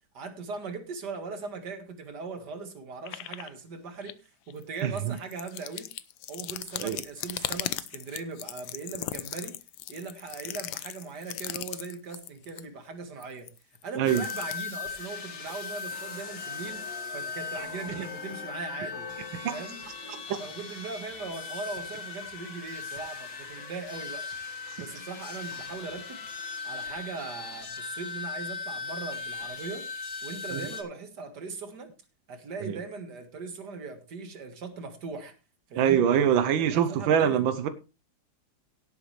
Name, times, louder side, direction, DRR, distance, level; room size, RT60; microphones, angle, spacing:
voice 1, 0.1-5.9 6.3-9.6 9.9-13.5 13.8-19.1 19.5-24.3 24.8-26.2 26.6-29.9 30.2-31.9 32.3-35.3 35.7-36.1 36.7-37.5, right 4 dB, 60° right, 6 dB, 2.4 m, -39 dB
sound 1, 3.1-3.5 4.0-4.1 4.5-12.7 13.2-14.6, left 13 dB, 90° left, 1.5 m, -38 dB
sound 2, 14.1-30.8, left 5 dB, 70° left, 2.3 m, -38 dB
voice 2, 35.8-37.7, right 9 dB, 90° right, 10 dB, 1.6 m, -24 dB
17.5 x 8.3 x 3.3 m, 0.31 s
omnidirectional pair, 2.1 m